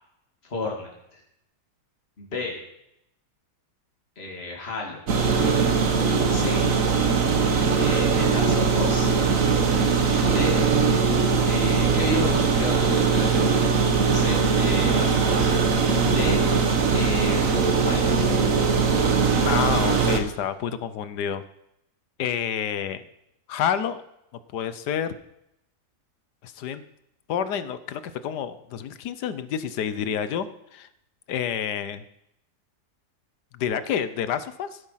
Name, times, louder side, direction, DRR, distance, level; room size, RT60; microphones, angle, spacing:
voice 1, 0.5-1.2 2.2-2.6 4.2-5.0 6.3-6.7 7.8-9.1 10.2-10.6 11.4-13.7 14.1-15.5 16.0-16.4 16.9-18.2, left 3 dB, 40° left, -1 dB, 2.7 m, -32 dB
sound 1, 5.1-20.2, right 5 dB, 55° right, 1.6 m, -21 dB
voice 2, 19.4-21.4 22.2-23.0 23.5-24.0 24.5-25.1 26.4-26.8 27.3-30.5 30.7-30.9 31.3-32.0 33.5-34.8, left 8 dB, 90° left, 13 dB, 1.4 m, -28 dB
16.0 x 8.3 x 5.7 m, 0.80 s
omnidirectional pair, 1.7 m